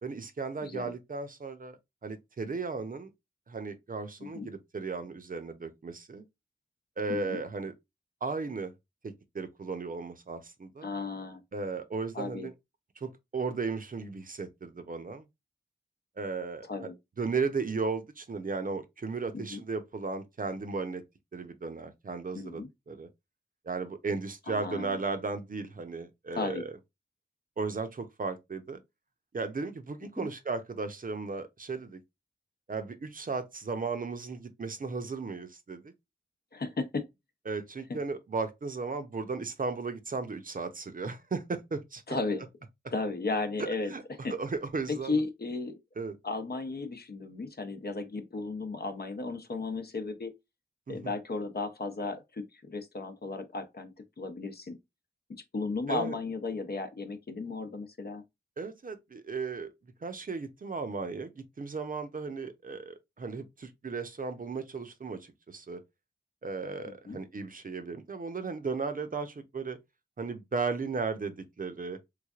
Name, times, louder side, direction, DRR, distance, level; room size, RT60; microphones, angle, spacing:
voice 1, 0.0-3.1 3.5-6.2 7.0-7.7 8.2-8.7 9.0-10.9 11.5-12.5 13.0-15.3 16.2-16.9 17.2-21.0 21.3-23.1 23.6-26.7 27.6-28.8 29.3-32.0 32.7-35.9 37.5-42.0 43.9-44.0 44.3-45.2 46.0-46.2 50.9-51.1 55.9-56.2 58.6-59.7 60.0-65.8 66.4-69.8 70.2-72.0, right 4 dB, 45° right, 0.6 m, -35 dB
voice 2, 7.1-7.4 10.8-11.4 12.1-12.5 16.7-16.9 19.3-19.6 22.3-22.7 24.5-25.0 26.3-26.7 30.2-30.3 36.5-37.1 37.9-38.0 42.1-42.5 42.9-43.9 44.2-44.3 44.9-45.7 46.2-50.3 50.9-54.8 55.3-58.2 67.1-67.2, left 3 dB, 55° left, 0.7 m, -35 dB
3.5 x 3.2 x 2.4 m
wide cardioid pair, 65°, 19 cm